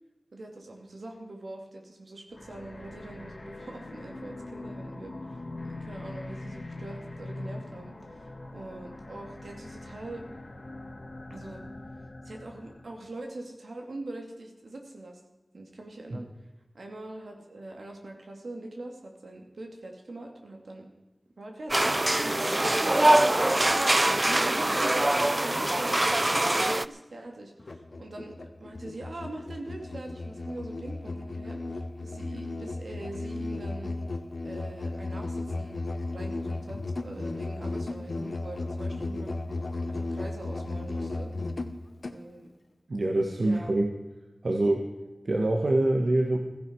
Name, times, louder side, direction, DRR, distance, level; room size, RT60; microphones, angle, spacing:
voice 1, 0.3-10.3 11.3-11.6 12.2-15.2 15.5-16.3 16.7-20.9 21.4-34.0 34.4-35.8 36.1-41.3 42.1-42.5 43.4-43.7, right 2 dB, 90° right, 2 dB, 2.7 m, -43 dB
sound 1, 2.3-12.9, left 2 dB, 50° left, 2.1 m, -42 dB
sound 2, 21.7-26.8, right 1 dB, 30° right, 0.5 m, -23 dB
Musical instrument, 27.6-42.2, left 2 dB, 65° left, 1.2 m, -35 dB
voice 2, 42.9-43.9 44.4-44.8 45.2-46.4, right 2 dB, 70° right, 2 dB, 1.4 m, -25 dB
15.5 x 15.0 x 4.7 m, 1.1 s
wide cardioid pair, 70°, 0 cm